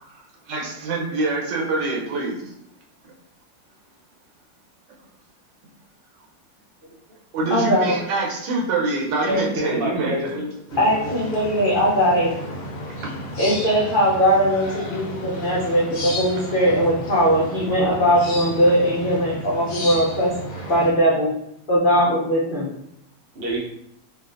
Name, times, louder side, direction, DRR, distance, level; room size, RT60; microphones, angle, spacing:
voice 1, 0.5-2.4 7.3-10.4 13.0-13.1 18.6-18.8, right 2 dB, 80° right, -1 dB, 1.4 m, -25 dB
voice 2, 7.5-8.0 10.8-12.3 13.4-20.3 20.7-21.3 21.7-22.7, equal, 80° left, -7 dB, 0.4 m, -19 dB
voice 3, 9.3-11.2 12.9-13.0 23.3-23.6, right 1 dB, 55° right, -3 dB, 0.6 m, -27 dB
sound 1, 10.7-20.9, equal, 60° left, 1.1 m, -33 dB
3.9 x 2.4 x 2.5 m, 0.77 s
omnidirectional pair, 1.9 m